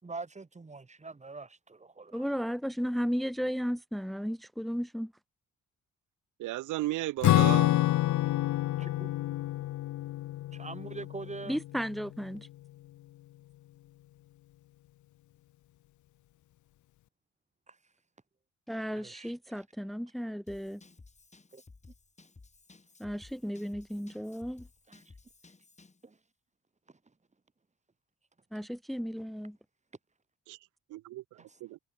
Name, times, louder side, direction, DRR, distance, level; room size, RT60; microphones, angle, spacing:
voice 1, 0.0-2.3 8.8-9.1 10.5-11.6 17.7-17.8 18.9-19.3 21.5-21.6 24.9-25.0 26.0-26.2 26.9-27.0 31.4-31.6, right 3 dB, 25° right, 4.1 m, -44 dB
voice 2, 2.1-5.1 11.5-12.5 18.7-20.8 23.0-24.7 28.5-29.6, equal, ahead, 1.5 m, -34 dB
voice 3, 6.4-7.7 30.5-30.6 30.9-31.8, right 17 dB, 85° right, 1.0 m, -35 dB
Acoustic guitar / Strum, 7.2-12.0, left 15 dB, 75° left, 0.8 m, -28 dB
Drum kit / Drum, 20.5-26.0, left 3 dB, 25° left, 4.5 m, -56 dB
cardioid pair, 90°, 30 cm